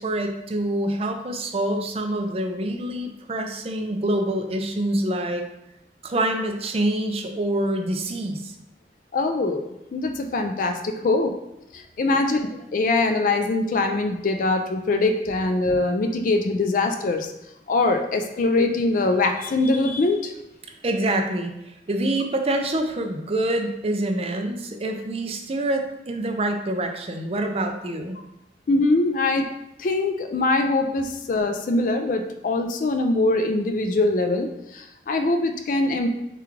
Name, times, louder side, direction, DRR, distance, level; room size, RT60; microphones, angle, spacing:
voice 1, 0.0-5.4 6.0-8.5 12.0-12.2 20.8-28.2, right 1 dB, 35° right, 5 dB, 0.4 m, -26 dB
voice 2, 9.1-9.7 9.9-11.3 11.7-17.3 17.7-20.3 28.7-29.5 29.8-36.1, left 2 dB, 45° left, 6 dB, 0.4 m, -23 dB
6.7 x 2.4 x 3.1 m, 0.88 s
head